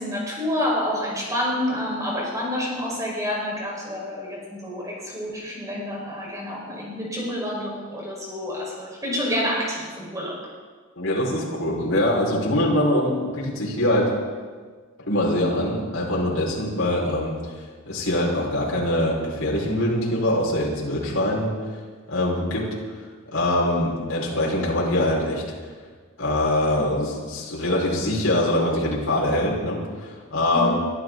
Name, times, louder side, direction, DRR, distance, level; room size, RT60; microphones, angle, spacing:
voice 1, 0.0-10.4 30.5-30.7, left 1 dB, 15° right, -3 dB, 5.2 m, -28 dB
voice 2, 11.0-14.1 15.1-21.5 22.1-22.7 23.3-25.4 26.2-30.7, left 1 dB, 75° left, -4 dB, 5.3 m, -23 dB
23.0 x 14.0 x 4.0 m, 1.5 s
head